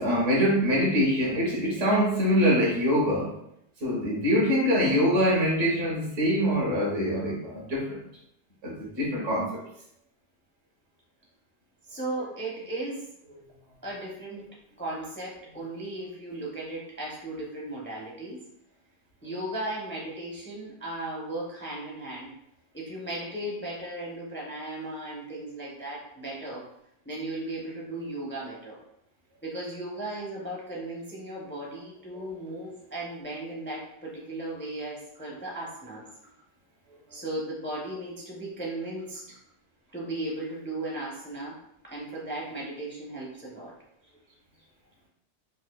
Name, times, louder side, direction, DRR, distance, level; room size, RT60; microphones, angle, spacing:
voice 1, 0.0-3.3 3.8-8.0 8.6-9.5, equal, 80° right, -3 dB, 1.4 m, -24 dB
voice 2, 11.9-13.1 13.8-14.5 14.8-18.4 19.2-22.3 22.7-26.7 27.0-28.8 29.4-36.1 37.1-39.4 39.9-41.6 41.8-43.7, right 1 dB, 15° left, -4 dB, 0.5 m, -36 dB
4.8 x 2.3 x 2.2 m, 0.76 s
omnidirectional pair, 1.3 m